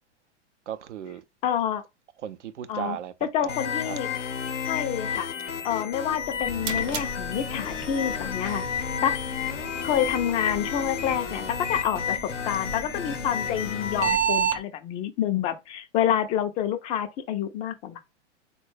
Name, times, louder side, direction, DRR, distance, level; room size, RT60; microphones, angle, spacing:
voice 1, 0.7-1.2 2.2-3.1 3.4-4.0, right 10 dB, 75° right, 0.5 m, -36 dB
voice 2, 1.4-1.8 2.7-3.0 3.2-4.1 4.7-5.3 5.6-8.6 9.0-9.1 9.8-18.0, left 9 dB, 20° left, 0.3 m, -28 dB
sound 1, 3.5-14.2, left 7 dB, 85° left, 0.7 m, -31 dB
sound 2, 6.1-14.6, right 8 dB, 30° right, 0.7 m, -33 dB
3.9 x 2.2 x 3.1 m
figure-of-eight pair, 100°, 35 cm